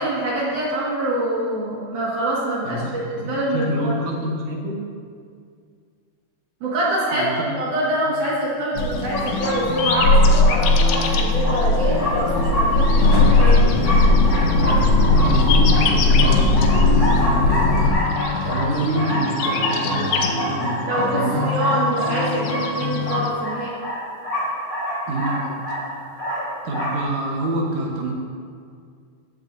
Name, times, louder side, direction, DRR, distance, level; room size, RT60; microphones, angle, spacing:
voice 1, 0.0-2.8 3.1-3.9 6.6-13.6 20.9-23.7, right 1 dB, 55° right, -7 dB, 2.6 m, -24 dB
voice 2, 2.6-4.8 7.1-7.4 8.0-8.1 15.1-18.0 18.4-21.5 25.1-25.8 26.6-28.1, right 1 dB, 80° right, -2 dB, 1.6 m, -27 dB
sound 1, 8.7-23.3, left 6 dB, 90° left, 3.4 m, -27 dB
sound 2, 8.8-17.9, left 2 dB, 70° left, 2.8 m, -17 dB
sound 3, 9.1-27.0, equal, 15° left, 2.6 m, -27 dB
15.5 x 11.0 x 2.7 m, 2.2 s
omnidirectional pair, 5.5 m